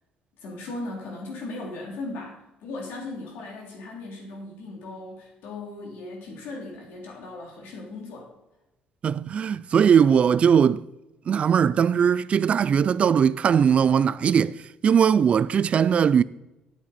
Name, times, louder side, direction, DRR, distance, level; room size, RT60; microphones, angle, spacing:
voice 1, 0.4-8.3, left 2 dB, 80° left, 3.1 m, -37 dB
voice 2, 9.0-10.8 11.3-14.6 14.8-16.2, right 7 dB, 40° right, 0.4 m, -20 dB
12.5 x 8.9 x 4.3 m
cardioid pair, 135°, 3 cm